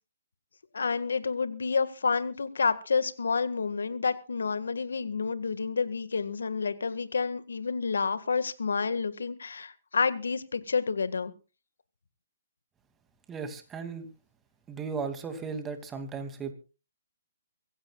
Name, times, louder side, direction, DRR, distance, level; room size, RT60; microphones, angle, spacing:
voice 1, 0.7-11.3, left 5 dB, 80° left, 12 dB, 1.8 m, -29 dB
voice 2, 13.3-14.1 14.7-16.5, right 5 dB, 15° right, 7 dB, 2.6 m, -36 dB
24.5 x 15.5 x 2.4 m, 0.34 s
hypercardioid pair, 135°, 0 cm